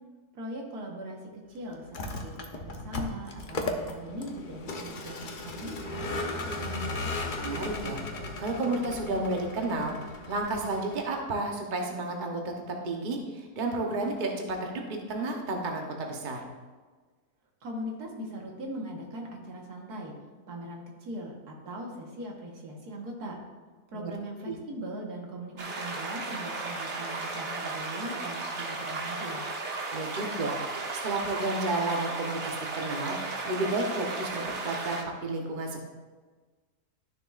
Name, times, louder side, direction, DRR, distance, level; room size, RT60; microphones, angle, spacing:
voice 1, 0.3-7.0 17.6-20.1 20.5-23.4 23.9-29.5, right 1 dB, 80° right, 0 dB, 1.8 m, -40 dB
Vehicle, 1.8-11.2, left 2 dB, 45° left, 0.7 m, -36 dB
voice 2, 7.4-8.0 8.4-16.5 23.9-24.1 24.4-24.6 29.9-30.6 31.0-35.8, right 2 dB, 35° right, 1 dB, 1.0 m, -32 dB
sound 1, 25.6-35.0, right 3 dB, 50° right, 1.3 m, -35 dB
12.0 x 6.8 x 2.5 m, 1.4 s
omnidirectional pair, 1.7 m